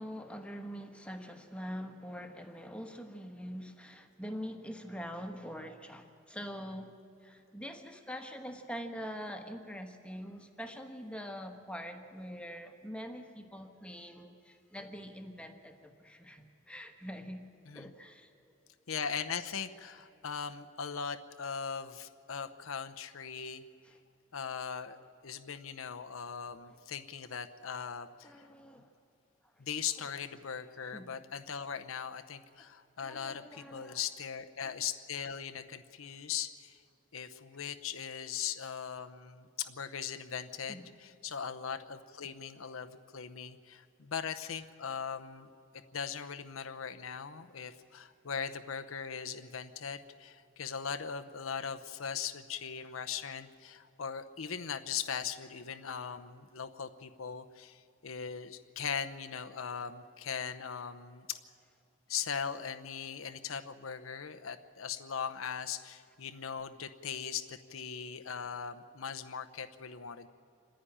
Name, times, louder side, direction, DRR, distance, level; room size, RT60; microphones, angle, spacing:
voice 1, 0.0-17.5 17.7-18.3 23.8-24.0 28.2-28.9 29.6-29.7 30.9-31.2 33.0-34.0 40.7-41.0, equal, 5° left, 5 dB, 1.3 m, -44 dB
voice 2, 18.9-23.6 24.3-28.5 29.6-36.8 37.1-45.5 45.9-61.4 62.1-70.3, left 7 dB, 80° left, 8 dB, 0.8 m, -39 dB
26.5 x 10.5 x 10.0 m, 2.6 s
head